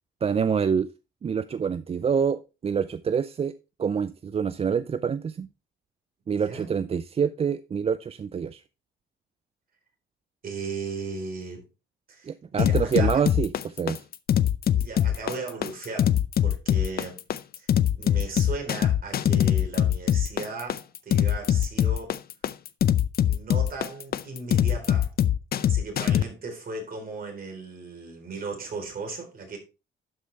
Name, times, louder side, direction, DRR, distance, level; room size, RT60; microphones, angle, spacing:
voice 1, 0.2-0.9 1.2-3.5 3.8-5.5 6.3-8.6 12.3-14.0, right 7 dB, 30° right, 0.4 m, -26 dB
voice 2, 6.3-6.7 10.4-11.6 12.1-13.3 14.8-16.1 16.4-17.2 17.6-17.7 18.0-22.2 23.3-25.1 25.6-29.6, right 4 dB, 45° right, 3.9 m, -36 dB
sound 1, 12.6-26.2, left 10 dB, 50° left, 0.5 m, -22 dB
12.0 x 5.1 x 3.3 m
cardioid pair, 90°, 20 cm